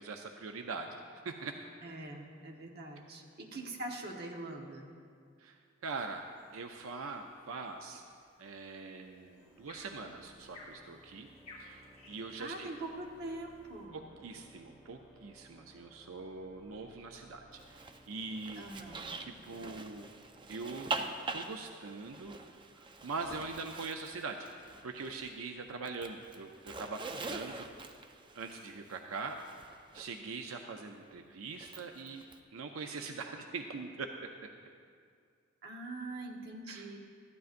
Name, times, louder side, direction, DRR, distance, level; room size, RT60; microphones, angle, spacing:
voice 1, 0.0-1.6 5.4-6.2 6.5-8.0 8.4-11.3 11.6-12.7 13.9-18.8 19.2-20.1 20.5-20.9 21.3-22.4 22.7-24.5 24.8-27.7 28.3-29.4 29.9-32.2 32.5-34.3 36.7-36.9, right 4 dB, 90° right, 4 dB, 0.5 m, -42 dB
voice 2, 1.8-4.9 12.4-14.0 18.6-19.1 35.6-37.0, right 2 dB, 50° right, 1 dB, 1.2 m, -43 dB
sound 1, 5.9-13.8, left 2 dB, 40° left, 3.1 m, -59 dB
Organ, 9.3-21.2, equal, ahead, 0.9 m, -61 dB
Zipper (clothing), 17.5-25.4 25.7-30.1 31.5-32.4, right 3 dB, 25° right, 0.4 m, -44 dB
14.0 x 12.0 x 2.5 m, 2.2 s
head